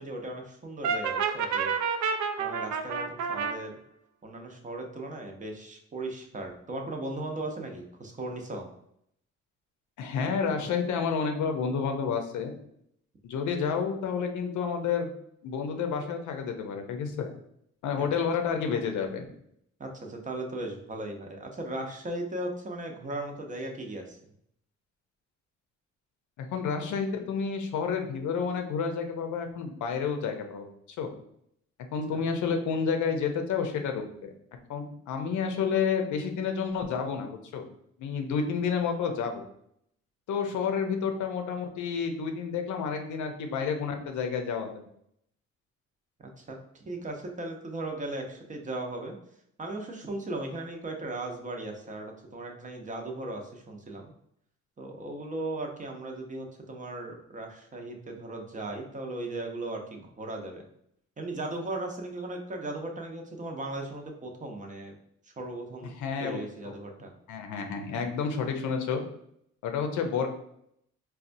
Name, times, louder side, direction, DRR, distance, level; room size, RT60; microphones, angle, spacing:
voice 1, 0.0-1.7 2.4-3.8 4.2-8.7 18.0-18.1 19.8-24.2 32.1-32.2 46.2-49.1 49.6-54.1 54.8-60.6 61.2-64.9 65.2-65.9 66.2-67.1, right 2 dB, 25° right, 2 dB, 0.6 m, -37 dB
Brass instrument, 0.8-3.6, right 6 dB, 70° right, 0.4 m, -29 dB
voice 2, 10.0-12.5 13.2-15.1 15.4-17.3 17.8-19.3 26.4-30.7 31.0-31.1 31.9-34.3 34.7-37.7 38.0-39.4 40.3-44.7 66.0-66.4 66.7-66.8 67.3-69.0 69.6-70.3, left 6 dB, 75° left, 5 dB, 0.6 m, -30 dB
4.1 x 2.2 x 2.6 m, 0.73 s
cardioid pair, 90°, 30 cm